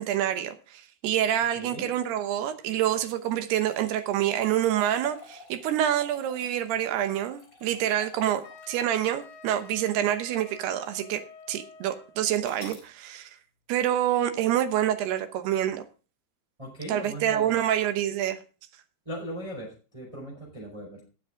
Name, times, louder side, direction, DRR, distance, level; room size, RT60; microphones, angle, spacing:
voice 1, 0.0-8.4 8.7-11.2 11.5-13.3 13.7-15.8 16.9-18.4, right 11 dB, 75° right, 9 dB, 2.8 m, -27 dB
voice 2, 1.6-1.9 16.6-17.6 19.0-21.0, right 1 dB, 5° right, -3 dB, 4.2 m, -38 dB
sound 1, 1.9-10.3 10.9-11.0 12.4-12.9, left 3 dB, 20° left, 3.4 m, -50 dB
Wind instrument woodwind instrument, 8.4-12.3, left 3 dB, 75° left, 2.1 m, -49 dB
18.5 x 7.3 x 3.6 m, 0.35 s
omnidirectional pair, 5.2 m